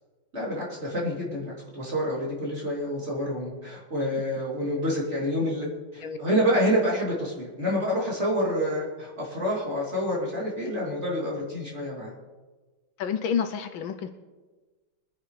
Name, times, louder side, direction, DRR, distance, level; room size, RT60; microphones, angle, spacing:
voice 1, 0.3-12.1, equal, 30° right, -4 dB, 3.4 m, -28 dB
voice 2, 13.0-14.1, left 7 dB, 75° left, 8 dB, 1.4 m, -29 dB
23.0 x 10.0 x 3.3 m, 1.3 s
omnidirectional pair, 2.3 m